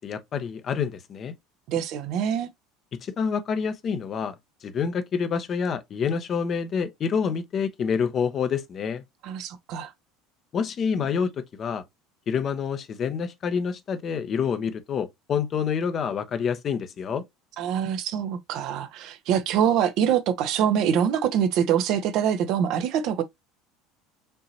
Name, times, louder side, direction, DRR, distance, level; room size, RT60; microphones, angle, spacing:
voice 1, 0.0-1.3 3.0-4.3 4.6-9.0 10.5-11.8 12.3-17.2, left 6 dB, 40° left, 0.8 m, -27 dB
voice 2, 1.7-2.5 9.2-9.9 17.6-23.2, right 9 dB, 55° right, 0.7 m, -24 dB
5.3 x 2.9 x 2.8 m
figure-of-eight pair, 70°, 0 cm